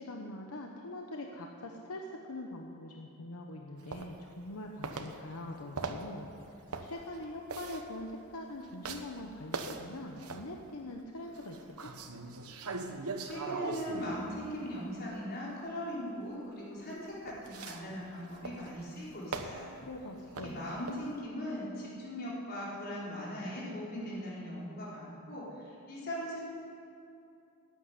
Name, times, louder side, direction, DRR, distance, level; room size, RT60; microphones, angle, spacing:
voice 1, 0.0-6.3 6.8-11.9 19.8-20.7, left 1 dB, 85° left, 1 dB, 1.1 m, -43 dB
sound 1, 3.9-4.6 4.8-10.7 11.2-15.1 16.9-21.1, right 3 dB, 90° right, 1.1 m, -41 dB
voice 2, 13.2-19.7 20.4-26.4, equal, 45° left, -6 dB, 4.4 m, -39 dB
13.5 x 9.2 x 9.8 m, 2.6 s
head